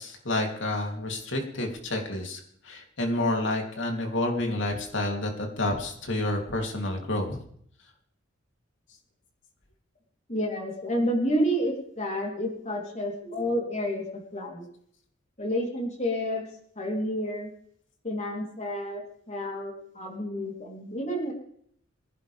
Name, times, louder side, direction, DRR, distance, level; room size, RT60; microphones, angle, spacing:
voice 1, 0.0-7.4, left 1 dB, 70° left, 2 dB, 3.3 m, -29 dB
voice 2, 10.3-14.1 14.3-14.7 15.4-16.4 16.8-17.5 18.0-19.0 19.3-21.3, equal, 35° left, 0 dB, 3.7 m, -29 dB
24.5 x 11.0 x 3.6 m, 0.65 s
head